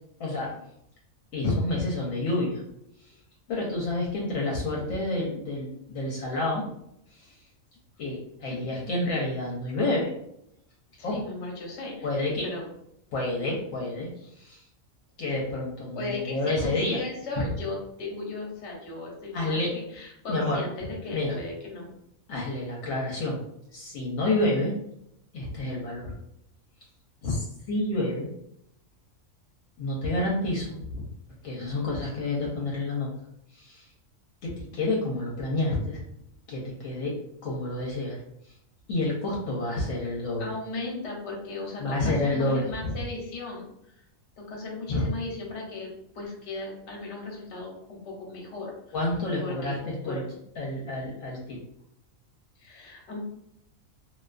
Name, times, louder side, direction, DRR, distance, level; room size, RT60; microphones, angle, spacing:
voice 1, 0.2-0.5 1.3-2.6 3.5-6.6 7.1-7.4 8.0-10.2 11.0-11.2 12.0-12.5 13.1-14.1 14.4-14.6 15.2-17.0 17.4-17.5 19.3-19.7 20.3-20.6 21.1-21.4 22.3-23.4 23.7-24.7 25.3-26.1 27.2-28.3 29.8-31.1 31.4-33.1 33.5-33.9 34.4-36.0 36.5-37.1 37.4-38.2 38.4-38.5 38.9-40.5 41.8-43.0 44.9-45.1 48.9-50.2 50.6-51.6, left 2 dB, 80° left, -4 dB, 1.0 m, -29 dB
voice 2, 11.1-12.6 15.9-21.9 40.4-43.6 44.4-49.0 49.4-50.3 52.6-53.2, left 2 dB, 60° left, -1 dB, 1.0 m, -37 dB
2.5 x 2.2 x 2.3 m, 0.76 s
omnidirectional pair, 1.4 m